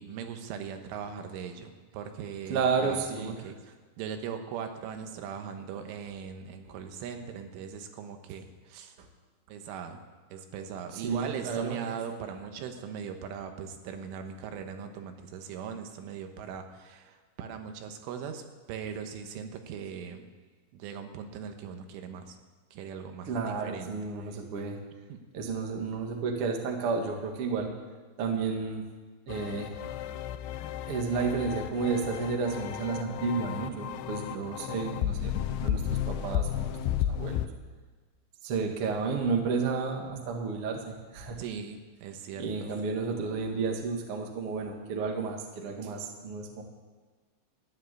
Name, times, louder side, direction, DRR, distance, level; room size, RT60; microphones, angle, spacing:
voice 1, 0.0-9.0 9.5-10.0 10.3-20.3 20.7-22.4 22.7-23.9 25.1-25.2 41.4-42.8, right 7 dB, 85° right, 6 dB, 3.7 m, -40 dB
voice 2, 2.5-3.5 9.0-9.1 10.9-11.8 23.3-24.8 25.3-27.7 28.2-28.8 29.3-29.8 30.8-37.5 38.4-41.4 42.4-46.6, right 4 dB, 60° right, 2 dB, 1.5 m, -32 dB
sound 1, 29.3-37.5, left 11 dB, 85° left, 2.3 m, -33 dB
14.5 x 9.4 x 9.8 m, 1.4 s
omnidirectional pair, 5.5 m